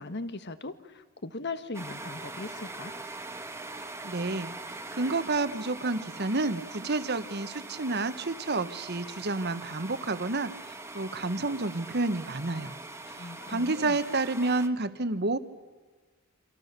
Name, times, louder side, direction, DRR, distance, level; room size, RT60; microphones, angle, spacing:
voice 1, 0.0-2.9 13.1-14.0, left 3 dB, 55° left, 12 dB, 1.4 m, -39 dB
sound 1, 1.7-14.7, right 2 dB, 15° right, 1.5 m, -42 dB
voice 2, 4.0-4.5 4.9-12.7 13.1-13.2 13.5-15.4, right 3 dB, 50° right, 12 dB, 1.3 m, -30 dB
28.5 x 26.0 x 6.8 m, 1.4 s
head